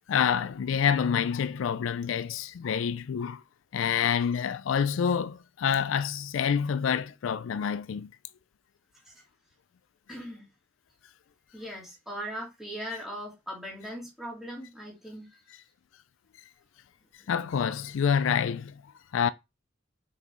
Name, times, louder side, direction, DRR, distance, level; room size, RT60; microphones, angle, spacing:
voice 1, 0.1-3.4 3.7-8.1 17.3-18.7 19.1-19.3, left 7 dB, 65° left, 0.3 m, -27 dB
voice 2, 10.1-10.5 11.5-15.3 17.2-17.3, equal, ahead, 3.1 m, -39 dB
5.8 x 5.4 x 3.1 m
head